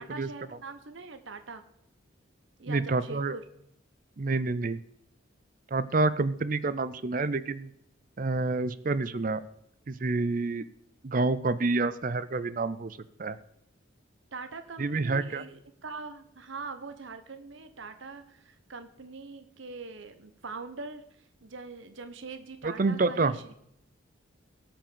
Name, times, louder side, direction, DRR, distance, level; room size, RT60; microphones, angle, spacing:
voice 1, 0.0-1.6 2.6-3.4 14.3-21.0 21.4-23.5, right 4 dB, 70° right, 9 dB, 1.0 m, -42 dB
voice 2, 2.7-3.4 4.2-4.8 5.7-7.7 8.2-9.4 9.9-10.7 11.0-13.4 14.8-15.4 22.6-23.3, right 3 dB, 40° right, 15 dB, 0.5 m, -28 dB
17.5 x 5.9 x 7.0 m, 0.78 s
head